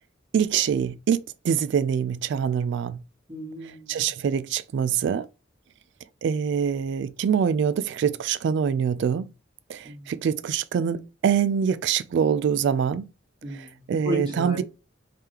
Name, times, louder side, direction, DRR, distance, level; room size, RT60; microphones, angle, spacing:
voice 1, 0.3-3.0 3.9-5.3 6.2-9.3 9.7-13.1 13.9-14.6, right 7 dB, 65° right, 0.3 m, -24 dB
voice 2, 3.3-4.1 9.8-10.1 13.4-14.6, equal, 25° right, 1.6 m, -34 dB
3.6 x 3.3 x 2.8 m
head